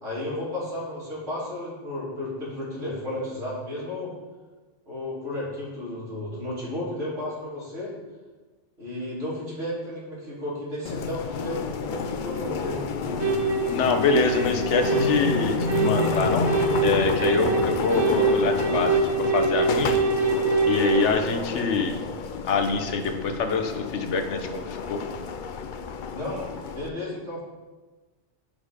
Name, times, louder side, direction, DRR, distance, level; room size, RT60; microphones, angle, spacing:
voice 1, 0.0-4.1 4.9-7.9 8.8-12.8 26.1-27.4, left 1 dB, 65° right, -7 dB, 3.1 m, -33 dB
sound 1, 10.8-26.9, left 5 dB, 55° left, 0.6 m, -30 dB
sound 2, 13.2-21.1, right 4 dB, 80° right, 1.1 m, -25 dB
voice 2, 13.7-16.5 16.8-20.0 20.7-22.0 22.4-25.0, left 4 dB, 80° left, 6 dB, 1.1 m, -25 dB
10.5 x 4.0 x 4.9 m, 1.3 s
omnidirectional pair, 1.2 m